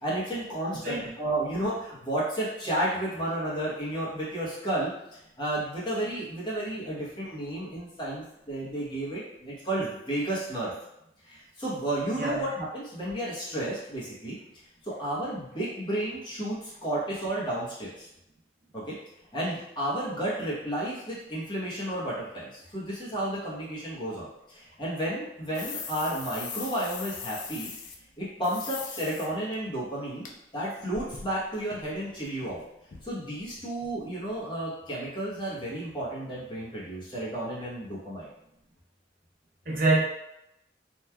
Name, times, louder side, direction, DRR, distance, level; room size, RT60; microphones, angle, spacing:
voice 1, 0.0-4.9 5.4-10.7 11.2-14.4 14.8-18.1 18.7-19.0 19.3-27.7 28.2-30.3 30.5-32.6 33.0-38.3, right 1 dB, 25° left, -8 dB, 0.9 m, -32 dB
voice 2, 0.7-1.0 12.2-12.4 39.7-40.0, right 2 dB, 50° right, -4 dB, 0.6 m, -25 dB
sound 1, 25.5-28.0 28.4-29.3 29.5-29.6 30.2-30.3 30.6-32.6 32.9-33.1 33.4-33.5 33.8-33.9 34.3-34.4, left 5 dB, 45° left, 0.3 m, -40 dB
3.0 x 2.3 x 2.2 m, 0.85 s
head